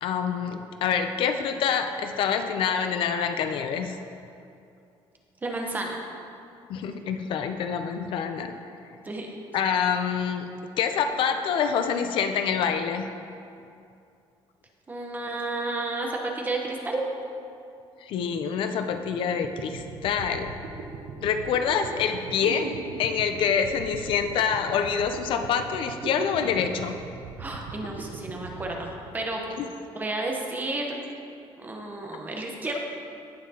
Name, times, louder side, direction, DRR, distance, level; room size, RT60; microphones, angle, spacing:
voice 1, 0.0-4.0 6.7-8.5 9.5-10.5 10.8-13.1 18.0-20.5 21.2-26.9 29.6-29.7, left 7 dB, 60° left, 7 dB, 0.5 m, -26 dB
voice 2, 5.4-6.0 9.0-9.3 14.9-17.0 27.4-28.9 29.1-29.4 29.9-30.9 31.6-32.8, right 2 dB, 20° right, 1 dB, 0.9 m, -31 dB
sound 1, 19.1-29.6, right 5 dB, 85° right, 0.7 m, -39 dB
16.0 x 5.8 x 2.9 m, 2.5 s
cardioid pair, 165°, 10 cm